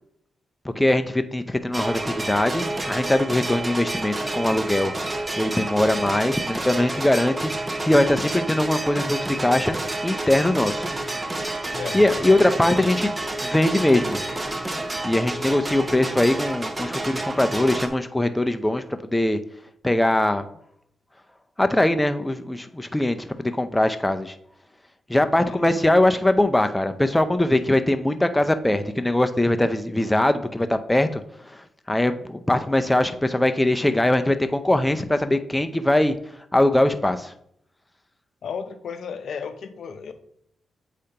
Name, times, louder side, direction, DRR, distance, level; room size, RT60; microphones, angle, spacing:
voice 1, 0.8-10.9 11.9-13.1 13.4-14.2 15.0-19.4 19.8-20.4 21.6-24.3 25.1-31.2 31.9-36.2 36.5-37.3, left 1 dB, 10° left, 8 dB, 0.5 m, -21 dB
sound 1, 1.7-17.9, right 2 dB, 20° right, 0.8 m, -29 dB
voice 2, 25.3-25.8 38.4-40.1, left 6 dB, 70° left, 9 dB, 0.6 m, -34 dB
7.7 x 5.0 x 2.9 m, 0.72 s
cardioid pair, 75°, 0 cm